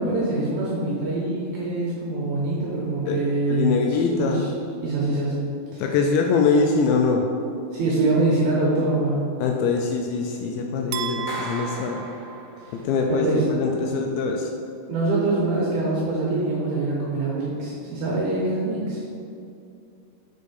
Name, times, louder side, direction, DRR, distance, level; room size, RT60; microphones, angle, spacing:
voice 1, 0.0-3.7 4.1-4.5 4.8-5.3 5.7-5.8 7.7-9.2 13.1-13.4 14.9-19.0, right 2 dB, 75° right, -5 dB, 2.3 m, -24 dB
voice 2, 3.5-4.4 5.8-7.2 9.4-12.0 12.7-14.5, left 4 dB, 85° left, 2 dB, 2.6 m, -23 dB
sound 1, 10.9-13.1, right 10 dB, 90° right, 3.1 m, -35 dB
Clapping, 11.3-12.9, equal, 60° left, 2.3 m, -37 dB
6.5 x 5.1 x 5.3 m, 2.6 s
omnidirectional pair, 5.5 m